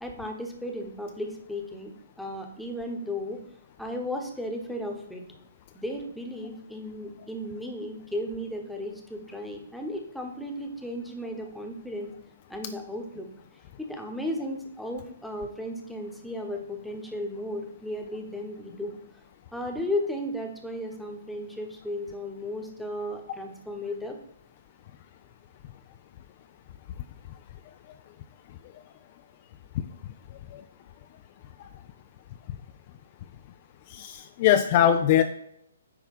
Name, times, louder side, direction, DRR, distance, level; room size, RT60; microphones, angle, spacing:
voice 1, 0.0-1.9 2.2-3.4 3.8-5.2 5.7-12.1 12.5-13.3 13.8-18.9 19.5-24.2, left 1 dB, ahead, 1 dB, 1.1 m, -35 dB
voice 2, 33.9-35.2, left 10 dB, 35° left, 8 dB, 0.4 m, -21 dB
9.4 x 3.4 x 5.3 m, 0.75 s
figure-of-eight pair, 125°, 0 cm